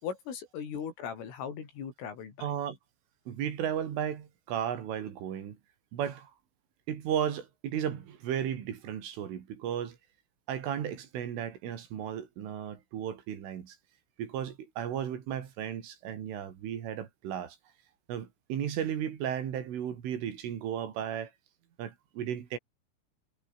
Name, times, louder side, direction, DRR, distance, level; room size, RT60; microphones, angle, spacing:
voice 1, 0.0-2.5, left 7 dB, 80° left, 7.3 m, -39 dB
voice 2, 2.4-2.8 3.3-5.6 5.9-6.3 6.9-10.0 10.5-13.8 14.2-17.6 18.1-21.3 21.8-22.6, right 9 dB, 75° right, 5.5 m, -34 dB
omnidirectional pair, 5.8 m